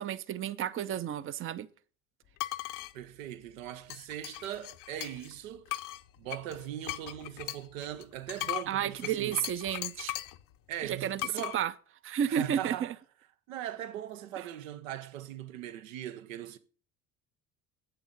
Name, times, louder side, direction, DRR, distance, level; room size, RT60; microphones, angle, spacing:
voice 1, 0.0-1.7 8.7-10.2 10.8-11.2 11.5-11.7 12.0-12.9 14.4-14.5, right 9 dB, 35° right, 0.6 m, -32 dB
sound 1, 2.4-2.9 3.9-5.3 5.7-10.4 11.2-11.6, left 16 dB, 55° left, 0.7 m, -38 dB
voice 2, 2.9-5.7 6.2-9.4 10.7-11.6 12.3-12.9 13.5-16.6, right 11 dB, 80° right, 0.9 m, -40 dB
8.1 x 6.8 x 5.2 m
hypercardioid pair, 65°, 39 cm